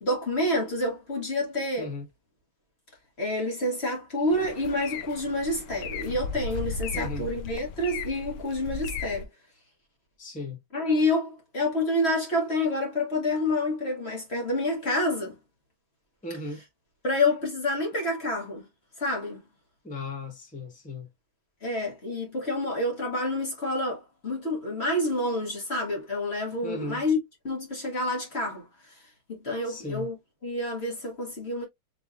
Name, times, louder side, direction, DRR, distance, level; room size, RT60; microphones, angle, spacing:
voice 1, 0.0-1.9 3.2-9.3 10.7-15.3 17.0-18.7 19.0-19.4 21.6-27.2 27.4-28.7 29.3-30.1 30.4-31.6, left 1 dB, 30° left, 1.6 m, -28 dB
sound 1, 4.3-9.2, left 4 dB, 75° left, 1.0 m, -36 dB
voice 2, 6.9-7.3 10.2-10.6 16.2-16.6 19.8-21.1 26.6-27.0 29.6-30.1, left 2 dB, 5° left, 0.8 m, -36 dB
4.7 x 3.4 x 2.3 m
omnidirectional pair, 2.4 m